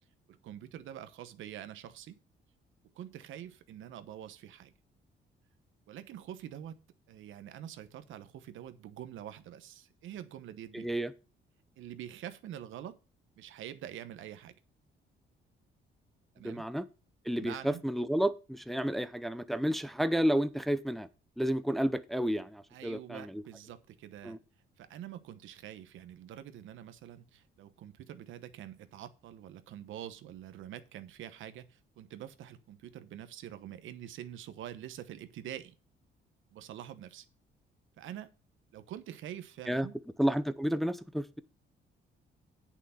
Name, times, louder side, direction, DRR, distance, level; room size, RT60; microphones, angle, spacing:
voice 1, 0.3-2.2 2.9-4.7 5.9-10.9 11.8-13.0 13.4-14.6 16.3-16.6 17.4-17.8 22.7-24.4 24.8-35.7 36.5-37.2 38.0-38.3 38.7-40.0, right 11 dB, 80° right, 1.0 m, -46 dB
voice 2, 10.7-11.1 16.4-16.8 17.3-21.1 21.4-23.4 24.2-24.4 39.7-39.9 40.2-41.4, equal, ahead, 0.6 m, -31 dB
8.3 x 6.1 x 5.6 m
cardioid pair, 90°, 20 cm